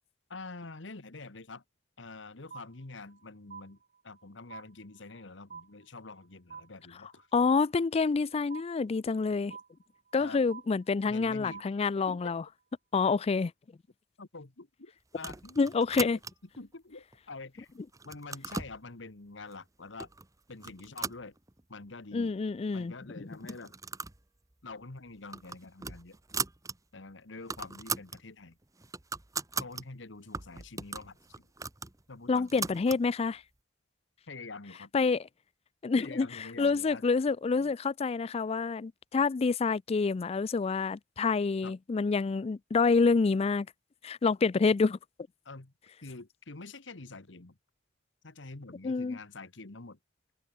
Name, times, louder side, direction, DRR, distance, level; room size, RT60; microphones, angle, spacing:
voice 1, 0.3-1.6 2.0-3.8 4.0-7.3 10.2-10.4 11.1-11.7 12.1-12.4 14.2-15.8 16.1-16.2 16.6-17.7 18.0-20.1 20.5-21.3 21.7-22.3 22.7-23.7 24.6-26.2 26.9-28.6 29.6-31.5 32.1-32.6 34.3-34.9 36.0-37.0 37.6-37.7 41.6-41.7 45.4-45.7 46.0-47.6 48.2-50.0, left 3 dB, 80° left, 1.5 m, -46 dB
sound 1, 2.5-3.2 3.5-4.2 4.5-5.2 5.5-6.2 6.5-7.2 7.5-8.2 8.5-9.2 9.5-10.2 10.5-11.2 11.5-12.2, right 6 dB, 45° right, 1.1 m, -48 dB
voice 2, 7.3-9.6 10.1-12.4 12.9-13.5 15.6-16.2 22.1-22.9 32.3-33.4 34.9-35.2 35.8-43.7 44.0-45.0 48.8-49.2, left 4 dB, 35° left, 0.4 m, -27 dB
sound 2, 15.1-16.6 17.1-17.6 17.9-18.8 19.5-19.6 20.0-20.3 20.6-21.8 22.2-22.3 22.5-22.6 23.3-24.2 24.5-24.7 25.1-26.8 27.1-27.2 27.4-28.2 28.6-29.8 30.3-33.0, right 4 dB, 20° right, 1.0 m, -39 dB
head